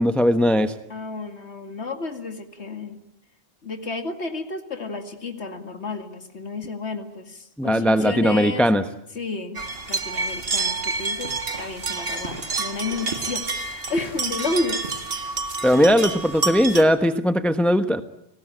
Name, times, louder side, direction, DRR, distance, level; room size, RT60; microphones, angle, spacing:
voice 1, 0.0-0.7 7.6-8.8 15.6-18.0, equal, ahead, 9 dB, 1.0 m, -19 dB
voice 2, 0.9-3.0 3.6-8.7 9.1-9.6 9.9-15.0, left 3 dB, 75° left, 6 dB, 2.6 m, -31 dB
sound 1, 9.6-16.8, right 3 dB, 60° right, 2.3 m, -28 dB
30.0 x 20.5 x 9.0 m, 0.77 s
omnidirectional pair, 1.1 m